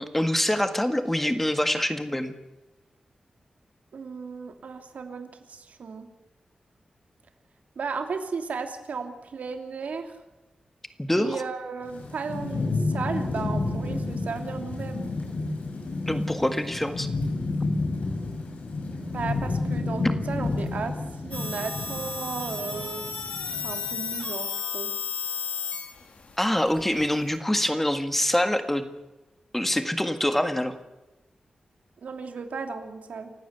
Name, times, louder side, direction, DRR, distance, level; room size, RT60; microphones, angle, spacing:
voice 1, 0.0-2.3 11.0-11.4 16.1-17.1 26.4-28.9 29.5-30.7, left 1 dB, 10° left, 8 dB, 1.8 m, -25 dB
voice 2, 3.9-6.1 7.8-10.2 11.1-15.1 19.1-21.0 21.2-23.1 23.6-24.9 32.0-33.3, right 5 dB, 85° right, 5 dB, 2.9 m, -35 dB
Thunderstorm / Rain, 11.8-24.1, left 3 dB, 90° left, 6.3 m, -30 dB
sound 1, 21.3-27.4, left 5 dB, 65° left, 3.6 m, -34 dB
28.5 x 16.0 x 8.2 m, 1.1 s
wide cardioid pair, 155°, 2 cm